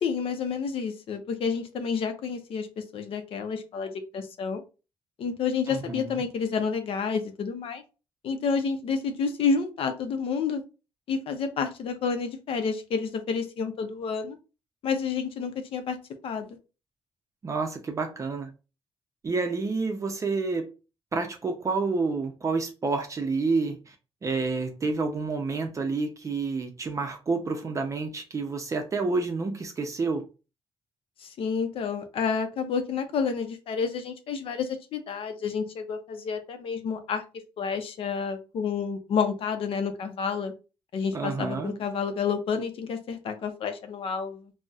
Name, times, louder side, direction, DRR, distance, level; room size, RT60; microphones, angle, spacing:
voice 1, 0.0-4.6 5.2-7.8 8.2-10.6 11.1-14.4 14.8-16.0 16.2-16.6 31.2-37.2 37.6-40.5 40.9-44.5, left 5 dB, 70° left, 0.5 m, -29 dB
voice 2, 5.7-6.3 17.4-18.5 19.2-20.7 21.1-24.0 24.2-30.3 41.1-41.7, right 4 dB, 30° right, 0.5 m, -29 dB
3.9 x 2.0 x 2.3 m
cardioid pair, 125°, 10 cm